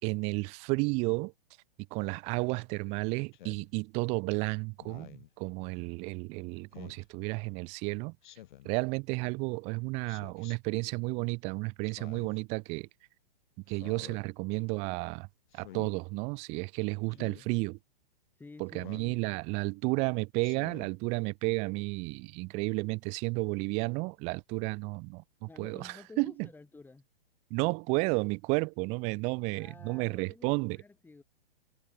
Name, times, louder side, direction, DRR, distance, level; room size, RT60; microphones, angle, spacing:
voice 1, 0.0-1.3 1.9-8.1 8.6-12.9 13.7-15.3 15.5-17.8 18.6-26.5 27.5-30.8, right 29 dB, 25° right, 0.5 m, -32 dB
Speech synthesizer, 3.3-3.7 4.8-5.3 6.7-7.0 8.2-8.7 10.1-10.6 11.8-12.4 13.7-14.2 15.5-15.9 17.1-17.4 18.8-19.2 20.4-20.9, left 13 dB, 55° left, 3.6 m, -50 dB
voice 2, 17.1-17.6 18.3-19.2 25.5-27.0 29.5-31.2, left 3 dB, 5° left, 7.4 m, -52 dB
hypercardioid pair, 135°, 29 cm